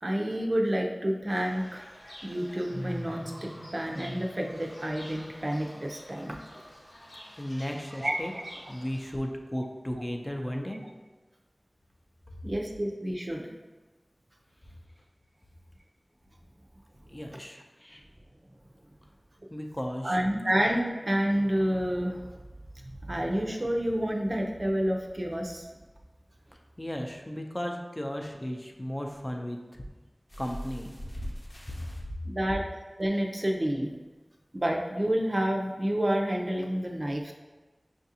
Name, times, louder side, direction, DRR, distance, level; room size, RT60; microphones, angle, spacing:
voice 1, 0.0-1.9 2.2-6.4 7.9-8.4 12.4-13.5 20.0-22.3 23.1-25.7 32.2-32.6 33.0-33.9 34.5-37.3, equal, 50° right, 0 dB, 0.5 m, -29 dB
Fowl / Bird, 1.3-9.1, equal, 90° left, 1.0 m, -45 dB
voice 2, 7.4-8.3 8.7-10.8 17.1-18.0 19.5-20.2 26.8-29.8 30.4-30.9 31.7-31.8, equal, 30° left, 2 dB, 0.5 m, -35 dB
sound 1, 30.3-32.0 33.0-33.1 33.5-33.6, equal, 65° left, 0.8 m, -40 dB
5.5 x 2.5 x 2.8 m, 1.2 s
wide cardioid pair, 40°, 0 cm